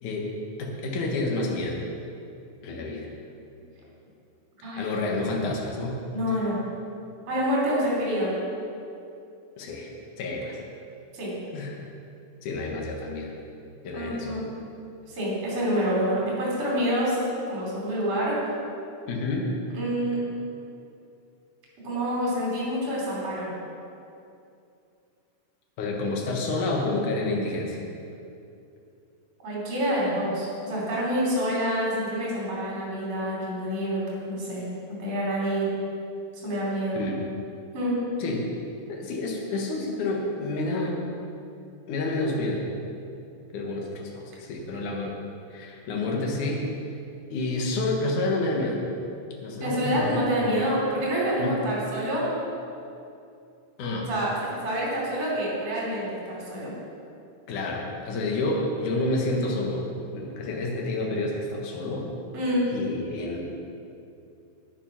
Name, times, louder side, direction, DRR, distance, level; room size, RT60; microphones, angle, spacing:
voice 1, 0.6-1.8 2.6-3.1 4.8-6.0 6.3-6.4 9.6-9.9 10.2-10.6 11.5-11.8 12.4-13.3 13.8-14.5 19.1-19.5 25.8-27.8 36.9-37.2 38.2-38.5 38.9-41.0 41.9-42.6 43.5-45.2 45.5-46.6 47.3-48.8 49.4-50.3 51.4-51.6 53.8-54.1 57.5-59.9 60.1-62.1 62.7-63.5, left 2 dB, 75° left, -1 dB, 2.9 m, -29 dB
voice 2, 6.1-6.6 7.3-8.3 11.1-11.3 13.9-14.4 15.1-17.2 17.5-18.4 19.7-20.2 21.8-23.5 29.4-34.6 35.0-35.7 36.4-37.0 37.7-38.0 49.6-52.3 54.1-56.7 62.3-62.7, equal, 55° right, -6 dB, 4.4 m, -27 dB
10.0 x 9.8 x 5.9 m, 2.6 s
omnidirectional pair, 3.6 m